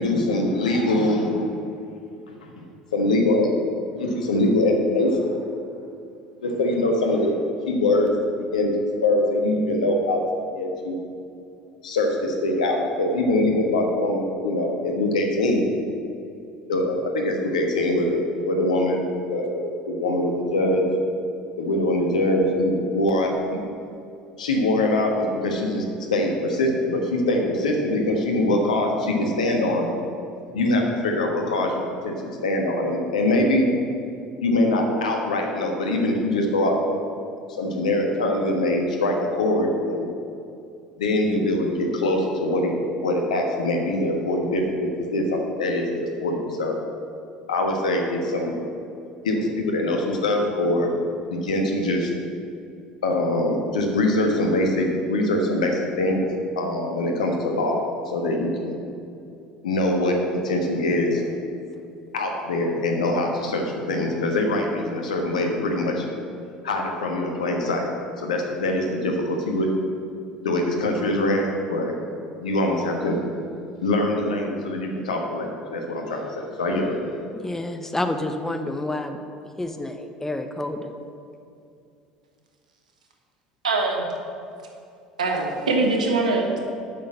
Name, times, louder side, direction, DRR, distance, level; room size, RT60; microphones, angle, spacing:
voice 1, 0.0-1.5 2.4-2.5 2.9-3.5 4.0-5.4 6.4-7.3 7.7-8.1 8.5-8.7 9.0-10.2 10.5-11.0 11.8-15.6 16.7-20.8 21.6-23.6 24.4-25.8 26.1-29.9 30.5-33.7 34.4-37.0 37.6-40.1 41.0-46.8 47.5-48.5 49.2-50.9 51.3-52.1 53.0-56.3 56.5-58.7 59.6-60.1 60.4-61.3 62.1-66.1 66.6-67.9 68.2-69.7 70.4-71.9 72.4-73.2 73.8-77.2, left 1 dB, 80° left, 2 dB, 1.4 m, -23 dB
voice 2, 77.3-79.2 79.6-80.9, left 1 dB, 10° left, 6 dB, 1.0 m, -29 dB
voice 3, 83.6-84.1 85.2-86.6, right 3 dB, 85° right, 2 dB, 1.3 m, -22 dB
8.1 x 6.5 x 7.4 m, 2.6 s
hypercardioid pair, 70°, 4 cm